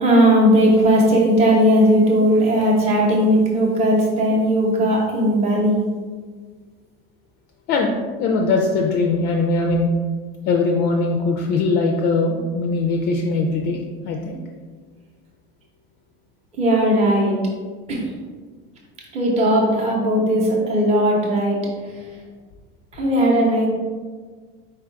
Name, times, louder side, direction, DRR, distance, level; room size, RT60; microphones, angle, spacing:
voice 1, 0.0-5.8 16.6-17.4 17.9-18.1 19.1-21.6 21.9-22.2 22.9-23.7, equal, 20° right, -2 dB, 0.8 m, -17 dB
voice 2, 7.7-9.9 10.5-13.8 14.0-14.4, left 3 dB, 35° left, 2 dB, 0.4 m, -21 dB
4.5 x 2.4 x 4.5 m, 1.5 s
cardioid pair, 155°, 29 cm